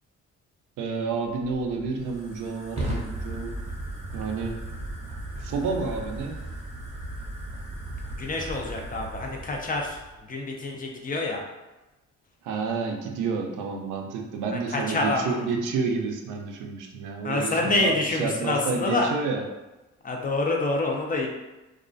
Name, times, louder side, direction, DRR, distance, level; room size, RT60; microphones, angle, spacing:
voice 1, 0.8-3.5 4.1-4.6 5.4-6.4 12.4-19.4, right 4 dB, 90° right, 2 dB, 0.5 m, -30 dB
Fire, 1.4-10.2, right 1 dB, 20° right, 0.6 m, -36 dB
voice 2, 8.2-10.0 10.3-11.4 14.7-15.4 17.2-19.1 20.0-21.3, left 2 dB, 30° left, 1 dB, 0.4 m, -27 dB
2.3 x 2.2 x 2.5 m, 1.1 s
cardioid pair, 90°, 30 cm